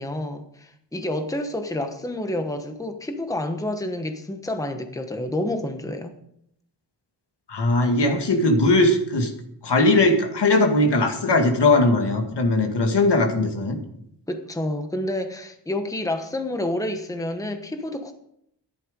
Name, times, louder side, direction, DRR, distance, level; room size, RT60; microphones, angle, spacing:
voice 1, 0.0-6.1 14.3-18.1, left 1 dB, 10° left, 6 dB, 1.1 m, -29 dB
voice 2, 7.5-9.3 9.6-13.8, left 2 dB, 70° left, 4 dB, 2.1 m, -19 dB
13.5 x 11.0 x 5.2 m, 0.72 s
wide cardioid pair, 130°, 43 cm